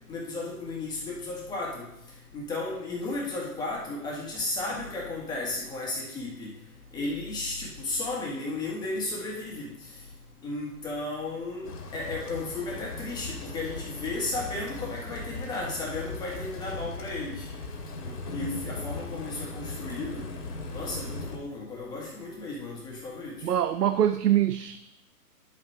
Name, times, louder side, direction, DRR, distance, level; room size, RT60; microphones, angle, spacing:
voice 1, 0.1-1.8 2.3-6.5 6.9-9.6 10.4-17.5 18.0-20.2 20.7-23.3, left 2 dB, 10° left, -3 dB, 1.6 m, -34 dB
sound 1, 11.6-21.4, left 3 dB, 85° left, 2.6 m, -38 dB
voice 2, 23.4-24.8, right 11 dB, 85° right, 11 dB, 0.7 m, -24 dB
10.5 x 7.6 x 3.3 m, 0.82 s
hypercardioid pair, 150°, 46 cm